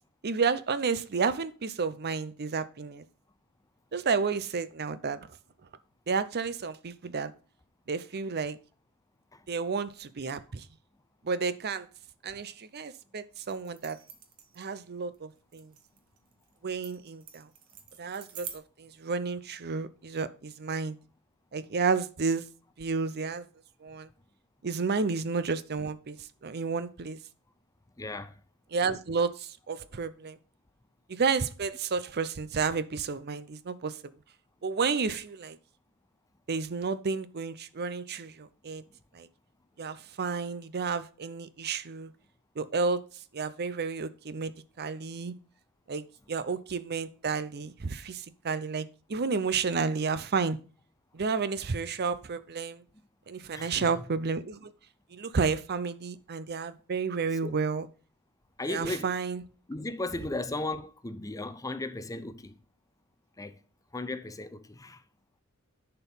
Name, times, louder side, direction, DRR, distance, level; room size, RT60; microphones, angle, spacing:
voice 1, 0.2-3.0 3.9-5.2 6.1-7.3 7.9-8.6 9.5-10.6 11.2-11.9 12.2-14.0 14.6-15.7 16.6-17.5 18.0-21.0 21.5-22.5 22.8-23.5 23.8-24.1 24.6-26.2 26.4-27.2 28.7-30.4 31.1-34.0 34.6-35.6 36.5-38.8 39.1-39.3 39.8-42.1 42.6-43.0 43.3-44.5 44.8-45.3 45.9-50.6 51.1-52.8 53.3-54.7 55.1-57.9 58.7-59.4, right 5 dB, 50° right, 0.6 m, -31 dB
sound 1, 13.4-18.6, right 8 dB, 85° right, 1.5 m, -47 dB
voice 2, 28.0-28.4 53.5-53.9 57.4-57.5 58.6-59.1 59.7-62.6 63.4-63.6 63.9-65.0, left 2 dB, 15° left, 0.6 m, -36 dB
10.5 x 4.5 x 5.5 m
head